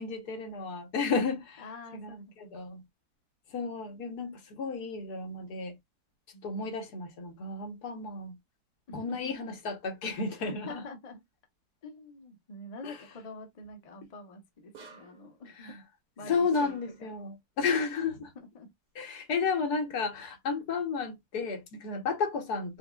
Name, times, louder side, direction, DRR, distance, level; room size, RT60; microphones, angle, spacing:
voice 1, 0.0-1.6 1.9-2.8 3.5-5.7 6.4-8.4 8.9-10.8 12.8-13.0 15.6-15.8 16.2-18.3 18.9-22.8, left 4 dB, 75° left, 1.5 m, -32 dB
voice 2, 1.6-2.6 6.3-6.7 8.9-9.5 10.5-11.2 11.8-15.7 16.2-17.2 18.4-18.7, left 2 dB, 35° left, 0.6 m, -46 dB
sound 1, 14.7-15.3 16.5-17.1, right 5 dB, 80° right, 1.9 m, -51 dB
4.9 x 2.3 x 2.3 m
omnidirectional pair, 1.7 m